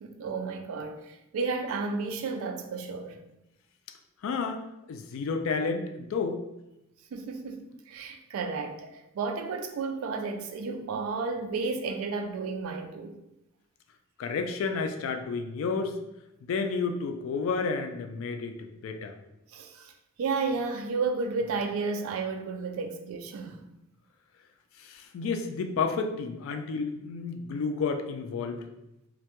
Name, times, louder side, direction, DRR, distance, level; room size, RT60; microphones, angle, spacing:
voice 1, 0.0-3.2 7.1-13.2 19.5-19.9 20.2-23.6, right 4 dB, 90° right, 0.3 m, -32 dB
voice 2, 4.2-6.4 14.2-16.0 16.4-19.1 24.8-28.7, left 4 dB, 70° left, 0.3 m, -31 dB
2.1 x 2.1 x 2.9 m
head